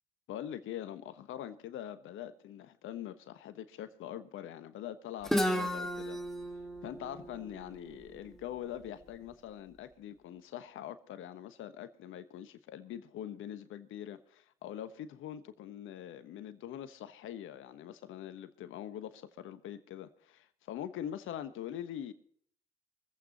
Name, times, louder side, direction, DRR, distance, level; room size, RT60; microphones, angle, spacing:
voice 1, 0.3-6.2 6.8-22.1, left 10 dB, 70° left, 1.2 m, -43 dB
Guitar, 5.2-9.0, equal, ahead, 2.0 m, -35 dB
24.0 x 8.5 x 4.1 m
hypercardioid pair, 60°, 21 cm